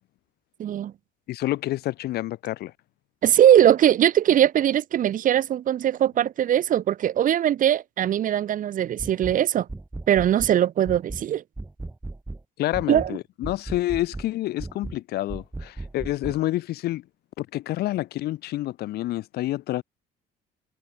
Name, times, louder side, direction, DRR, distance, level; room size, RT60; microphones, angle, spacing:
voice 1, 0.6-0.9 3.2-9.7 10.1-11.4 12.9-13.2, right 11 dB, 55° right, 1.1 m, -20 dB
voice 2, 1.3-2.7 12.6-17.0 17.4-19.8, left 15 dB, 70° left, 0.8 m, -28 dB
sound 1, 9.0-9.4 9.7-10.6 10.9-11.3 11.6-12.4 12.7-13.1 13.4-14.3 14.6-15.0 15.3-16.4, right 2 dB, 10° right, 2.5 m, -36 dB
cardioid pair, 110°, 17 cm